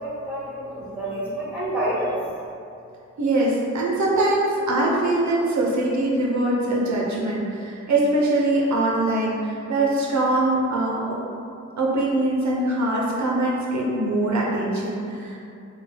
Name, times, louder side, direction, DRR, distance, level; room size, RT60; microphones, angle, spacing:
voice 1, 0.0-2.1, right 1 dB, 5° right, -8 dB, 0.9 m, -28 dB
voice 2, 3.2-11.2 11.8-15.4, right 2 dB, 70° right, -3 dB, 0.5 m, -22 dB
3.3 x 2.2 x 3.5 m, 2.5 s
wide cardioid pair, 145°, 29 cm